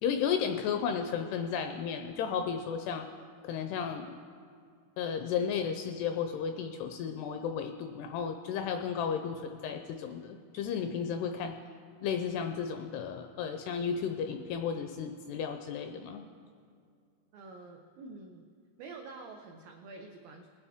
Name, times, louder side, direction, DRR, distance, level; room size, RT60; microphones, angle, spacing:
voice 1, 0.0-3.1 3.4-4.2 5.0-11.6 12.0-16.2, left 7 dB, 85° left, 6 dB, 2.4 m, -33 dB
voice 2, 17.3-18.5 18.8-20.5, right 3 dB, 90° right, 2 dB, 2.0 m, -47 dB
20.0 x 9.8 x 3.5 m, 2.2 s
omnidirectional pair, 5.1 m